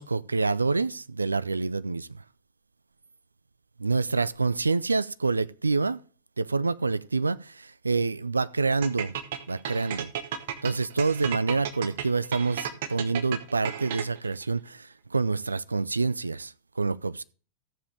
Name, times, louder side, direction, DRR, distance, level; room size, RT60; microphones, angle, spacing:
voice 1, 0.0-2.2 3.8-6.0 6.4-9.1 9.5-10.1 10.6-17.2, right 4 dB, 80° right, 0.4 m, -27 dB
sound 1, 8.8-14.3, right 9 dB, 55° right, 1.2 m, -34 dB
14.0 x 7.4 x 3.4 m
figure-of-eight pair, 90°, 0 cm